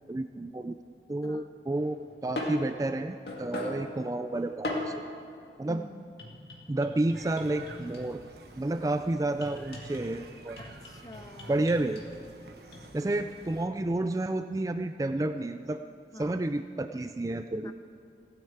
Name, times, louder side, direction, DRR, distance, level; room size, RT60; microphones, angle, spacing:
voice 1, 0.1-0.8 1.1-4.9 5.6-5.9 6.7-8.2 8.6-10.6 11.5-12.0 12.9-15.8 16.1-17.7, right 2 dB, 20° right, 9 dB, 0.3 m, -30 dB
sound 1, 1.7-5.1 6.2-8.3 9.4-10.1 10.6-12.1 12.7-12.9, left 1 dB, 65° left, 2.2 m, -39 dB
voice 2, 5.7-6.2 10.6-11.6 16.1-16.4 17.6-17.7, left 1 dB, 20° left, 9 dB, 0.7 m, -47 dB
sound 2, 7.1-13.7, right 2 dB, 60° right, 1.3 m, -51 dB
16.0 x 8.8 x 8.7 m, 2.4 s
head